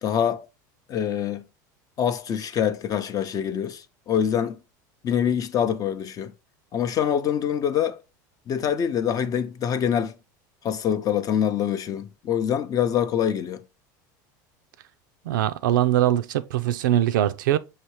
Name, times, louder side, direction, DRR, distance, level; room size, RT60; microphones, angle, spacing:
voice 1, 0.0-0.5 0.9-1.4 2.0-4.6 5.0-6.3 6.7-8.0 8.5-10.1 10.6-13.6, left 9 dB, 35° left, 0.6 m, -25 dB
voice 2, 15.2-17.6, right 12 dB, 85° right, 0.4 m, -22 dB
5.7 x 2.8 x 3.1 m
supercardioid pair, 105°, 10 cm